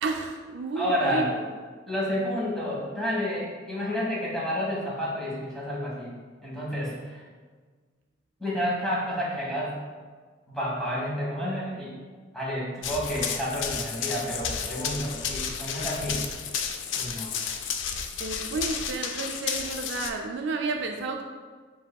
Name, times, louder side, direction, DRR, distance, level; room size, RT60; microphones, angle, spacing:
voice 1, 0.0-1.4 18.2-21.2, right 3 dB, 65° right, 3 dB, 0.4 m, -31 dB
voice 2, 0.7-1.2 1.9-6.1 6.4-7.2 8.4-9.8 10.5-11.9 12.3-16.2 16.9-17.3, equal, ahead, -7 dB, 1.2 m, -30 dB
Run, 12.8-20.1, left 7 dB, 70° left, 0.3 m, -32 dB
7.0 x 2.7 x 2.2 m, 1.5 s
head